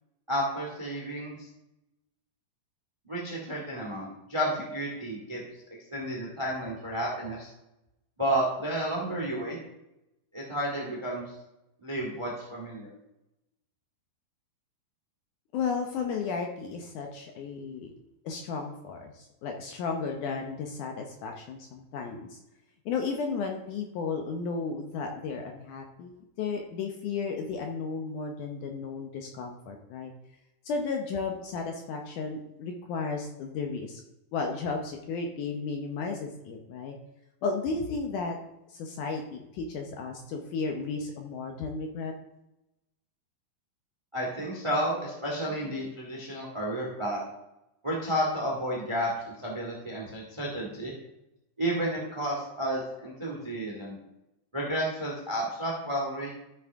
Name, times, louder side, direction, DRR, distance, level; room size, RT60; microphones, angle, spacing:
voice 1, 0.3-1.5 3.1-5.4 5.9-7.5 8.2-9.6 10.3-11.2 11.8-12.9 44.1-47.2 47.8-50.9 51.6-54.0 54.5-56.3, right 1 dB, 50° right, -2 dB, 0.3 m, -31 dB
voice 2, 15.5-17.9 18.3-22.4 22.9-30.1 30.6-34.0 34.3-37.0 37.4-38.4 38.7-42.1, left 4 dB, 75° left, 3 dB, 1.9 m, -34 dB
13.5 x 6.3 x 3.5 m, 0.90 s
omnidirectional pair, 4.4 m